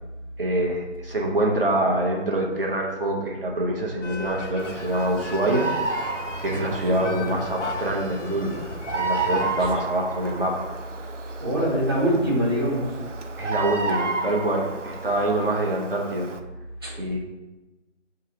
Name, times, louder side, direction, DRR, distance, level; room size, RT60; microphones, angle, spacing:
voice 1, 0.4-5.7 6.4-8.6 8.9-10.7 13.4-16.3 17.0-17.2, right 1 dB, 50° right, -1 dB, 0.9 m, -25 dB
sound 1, 4.0-9.8, left 4 dB, 75° left, 0.6 m, -37 dB
Bird vocalization bird call bird song, 4.6-16.4, right 4 dB, 80° right, 0.6 m, -32 dB
voice 2, 6.4-7.2 11.4-13.0 16.8-16.9, equal, 20° right, -10 dB, 0.7 m, -25 dB
6.7 x 2.5 x 2.8 m, 1.1 s
figure-of-eight pair, 165°, 36 cm